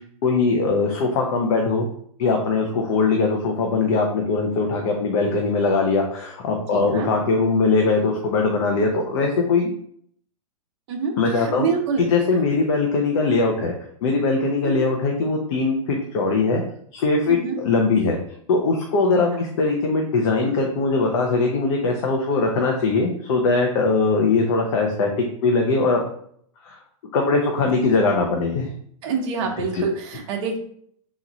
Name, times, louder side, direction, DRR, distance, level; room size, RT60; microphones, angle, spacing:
voice 1, 0.2-1.9 2.2-9.7 11.2-11.7 12.1-13.7 14.0-16.6 16.9-18.2 18.5-26.0 26.6-26.8 27.1-28.7 29.7-29.8, left 3 dB, 55° left, 1 dB, 0.8 m, -21 dB
voice 2, 6.7-7.1 10.9-12.0 12.3-12.4 14.6-14.9 17.3-17.6 19.1-19.4 29.0-30.6, right 5 dB, 45° right, 1 dB, 1.1 m, -27 dB
3.6 x 3.1 x 4.0 m, 0.64 s
hypercardioid pair, 150°, 18 cm